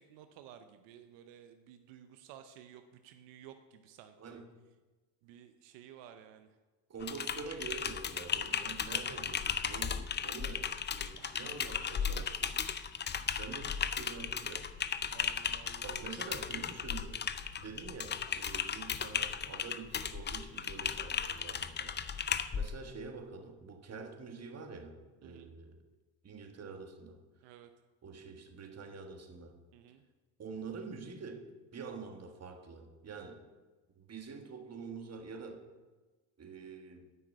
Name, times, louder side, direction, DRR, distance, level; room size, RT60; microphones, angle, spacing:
voice 1, 0.0-4.4 5.2-6.5 11.2-11.5 13.1-13.4 15.1-16.3 25.2-25.5 27.4-27.7 29.7-30.0, right 10 dB, 85° right, 8 dB, 0.8 m, -54 dB
voice 2, 6.9-12.6 13.4-14.7 15.8-17.2 17.6-25.0 25.2-25.8 26.2-27.2 28.0-29.6 30.4-31.4 31.7-33.4 33.9-35.6 36.4-37.1, right 4 dB, 35° right, 5 dB, 1.6 m, -46 dB
Typing, 7.0-22.7, left 7 dB, 25° left, 0.5 m, -36 dB
9.5 x 6.0 x 8.1 m, 1.2 s
cardioid pair, 95°, 42 cm